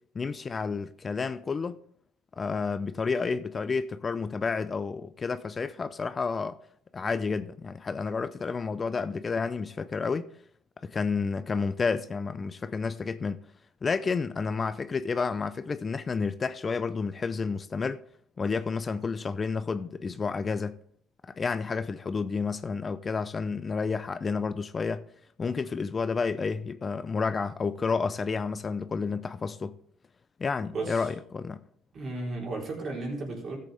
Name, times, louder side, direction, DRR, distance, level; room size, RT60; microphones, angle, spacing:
voice 1, 0.1-1.8 2.4-6.6 6.9-10.3 10.8-13.4 13.8-18.0 18.4-20.8 21.3-25.0 25.4-29.8 30.4-31.6, left 4 dB, 35° left, 0.5 m, -30 dB
voice 2, 30.7-31.1 31.9-33.6, right 2 dB, 50° right, 3.8 m, -34 dB
13.5 x 7.7 x 3.4 m
supercardioid pair, 80°, 0 cm